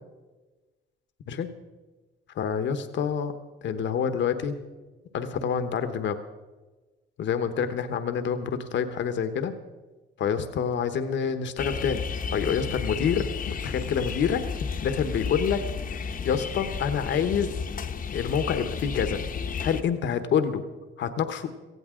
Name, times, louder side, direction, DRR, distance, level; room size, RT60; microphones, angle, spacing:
voice 1, 2.3-3.3 3.6-4.6 5.1-6.2 7.2-9.5 10.2-12.0 12.3-14.4 14.8-15.6 16.2-17.5 18.1-19.2 19.6-20.6 21.0-21.5, left 7 dB, 70° left, 9 dB, 1.1 m, -27 dB
sound 1, 11.6-19.8, left 6 dB, 45° left, 0.9 m, -32 dB
17.5 x 15.5 x 3.8 m, 1.2 s
cardioid pair, 90°, 20 cm